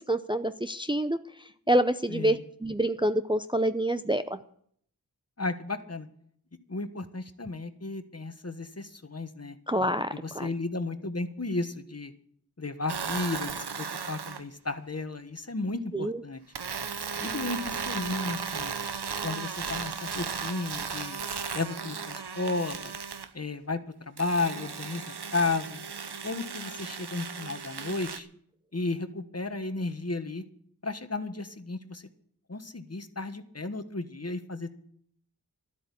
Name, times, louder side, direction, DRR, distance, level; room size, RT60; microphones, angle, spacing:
voice 1, 0.1-1.2 1.7-4.4 9.7-10.1 10.3-10.5 15.9-16.2, right 1 dB, 10° right, 10 dB, 0.6 m, -27 dB
voice 2, 2.1-2.4 5.4-6.1 6.7-9.6 10.1-12.1 12.6-16.4 17.2-18.7 19.2-21.2 21.5-22.9 23.3-23.8 24.1-25.0 25.3-25.8 26.2-28.3 28.7-30.4 30.8-32.0 32.5-34.8, left 3 dB, 40° left, 10 dB, 1.3 m, -33 dB
sound 1, 12.9-14.4 16.5-23.3 24.2-28.2, right 6 dB, 85° right, 0.9 m, -36 dB
12.5 x 8.1 x 9.9 m, 0.63 s
wide cardioid pair, 55°, 39 cm